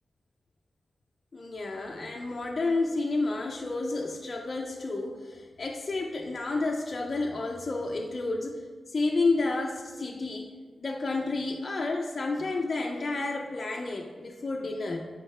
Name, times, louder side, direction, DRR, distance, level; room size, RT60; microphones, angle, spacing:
voice 1, 1.3-8.6 8.9-10.5 10.8-15.1, left 3 dB, 35° left, 1 dB, 0.4 m, -30 dB
9.0 x 3.6 x 3.2 m, 1.5 s
wide cardioid pair, 165°, 0 cm